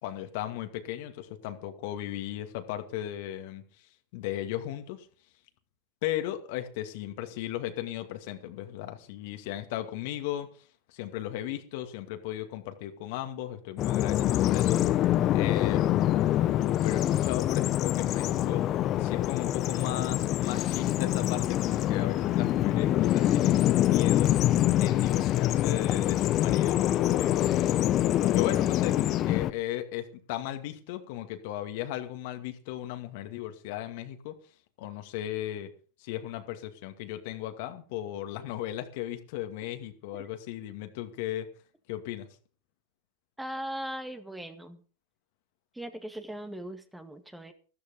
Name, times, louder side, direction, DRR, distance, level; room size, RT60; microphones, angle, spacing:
voice 1, 0.0-5.1 6.0-10.5 10.9-15.0 15.3-16.1 16.8-18.7 19.0-24.3 24.8-27.7 28.2-34.3 34.8-35.7 36.0-41.5 41.9-42.3, left 13 dB, 60° left, 7 dB, 2.3 m, -36 dB
Bird vocalization bird call bird song, 13.8-29.5, left 13 dB, 40° left, 1.0 m, -25 dB
voice 2, 43.4-44.8 45.7-47.5, right 1 dB, 5° right, 8 dB, 1.9 m, -39 dB
14.0 x 13.0 x 5.3 m, 0.38 s
hypercardioid pair, 105°, 0 cm